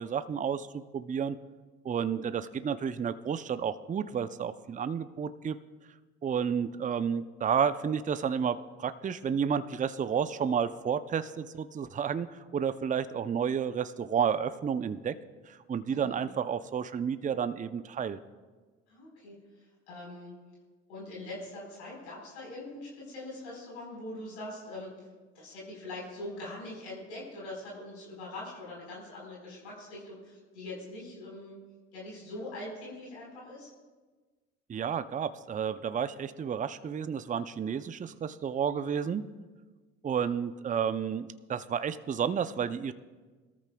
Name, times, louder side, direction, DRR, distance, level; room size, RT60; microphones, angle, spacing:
voice 1, 0.0-1.4 1.8-5.6 6.2-15.1 15.5-18.2 34.7-39.3 40.0-42.9, right 7 dB, 25° right, 12 dB, 0.6 m, -31 dB
voice 2, 15.9-16.2 18.9-20.3 20.9-25.1 25.3-31.6 31.9-33.7, left 1 dB, 85° left, -3 dB, 4.4 m, -43 dB
21.0 x 13.5 x 2.3 m, 1.3 s
hypercardioid pair, 65°, 33 cm